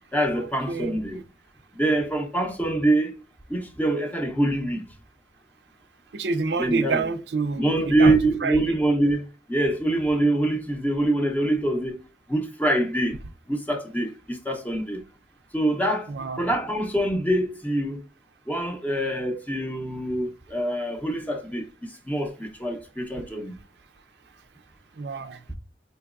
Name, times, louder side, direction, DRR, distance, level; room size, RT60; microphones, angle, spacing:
voice 1, 0.1-1.2 1.7-3.2 3.5-4.8 6.6-7.1 7.6-12.0 12.3-13.2 13.5-15.0 15.5-18.0 18.5-23.6, right 1 dB, 10° left, 0.6 m, -25 dB
voice 2, 0.7-1.0 6.1-8.6 16.1-16.5 25.0-25.4, right 4 dB, 75° right, 0.5 m, -27 dB
4.5 x 3.0 x 2.4 m
head